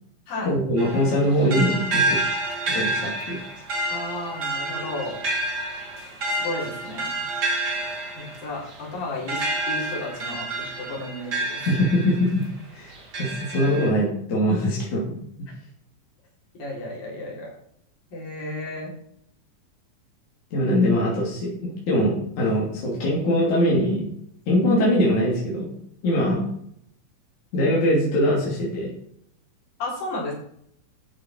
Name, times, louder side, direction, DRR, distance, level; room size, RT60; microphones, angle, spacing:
voice 1, 0.5-2.2 2.7-3.4 11.7-12.5 12.7-15.1 20.5-24.1 24.5-25.7 26.0-26.5 27.5-28.9, equal, 55° left, -4 dB, 4.3 m, -22 dB
sound 1, 0.8-12.5 12.9-13.9, right 2 dB, 35° right, 1.9 m, -29 dB
voice 2, 3.9-5.2 6.3-7.2 8.2-11.7 16.5-17.5 18.1-18.9 29.8-30.3, left 2 dB, 70° left, -4 dB, 6.1 m, -33 dB
13.5 x 8.1 x 4.7 m, 0.69 s
omnidirectional pair, 4.1 m